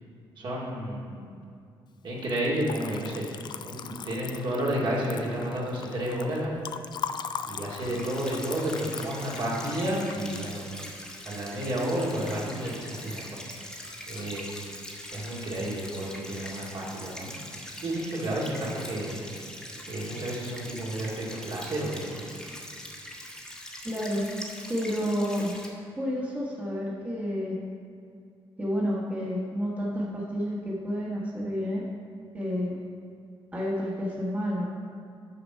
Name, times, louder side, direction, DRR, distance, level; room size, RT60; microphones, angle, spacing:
voice 1, 0.4-1.3 2.0-3.4 3.6-6.5 7.5-10.8 11.2-13.4 14.1-14.6 15.1-17.3 17.8-19.2 19.9-22.2, right 1 dB, 60° right, -5 dB, 2.1 m, -31 dB
Liquid, 2.2-12.4 12.7-13.4 13.6-14.4, left 7 dB, 50° left, 0.3 m, -40 dB
sound 1, 7.8-25.7, left 1 dB, 5° left, 1.2 m, -42 dB
voice 2, 23.8-24.2 24.7-25.6 26.0-27.6 28.6-31.9 32.3-32.8 33.5-34.7, equal, 15° right, -5 dB, 1.3 m, -30 dB
6.7 x 5.9 x 5.5 m, 2.4 s
cardioid pair, 105°, 9 cm